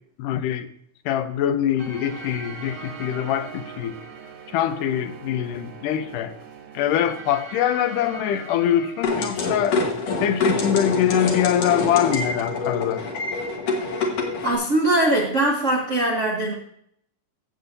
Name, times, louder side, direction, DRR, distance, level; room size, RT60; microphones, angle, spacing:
voice 1, 0.2-0.7 1.1-4.0 4.5-6.3 6.7-9.9 10.2-13.1, left 10 dB, 85° left, 10 dB, 2.3 m, -23 dB
sound 1, 1.8-10.6, right 4 dB, 55° right, 1.5 m, -41 dB
sound 2, 9.0-14.6, left 3 dB, 60° left, 2.4 m, -26 dB
voice 2, 13.7-14.2 14.4-16.5, right 1 dB, 75° right, -1 dB, 0.6 m, -22 dB
14.5 x 7.8 x 2.7 m, 0.68 s
omnidirectional pair, 3.6 m